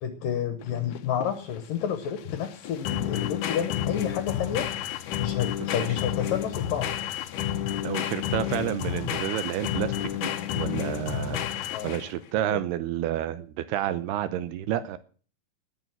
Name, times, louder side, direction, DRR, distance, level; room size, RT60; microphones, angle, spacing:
voice 1, 0.0-4.7 5.2-6.9 11.7-12.0 12.5-12.6, left 9 dB, 70° left, 9 dB, 2.2 m, -30 dB
sound 1, 0.6-12.2, left 11 dB, 90° left, 1.7 m, -31 dB
voice 2, 7.8-15.0, right 12 dB, 80° right, 12 dB, 2.6 m, -30 dB
19.0 x 6.7 x 6.0 m, 0.40 s
omnidirectional pair, 5.0 m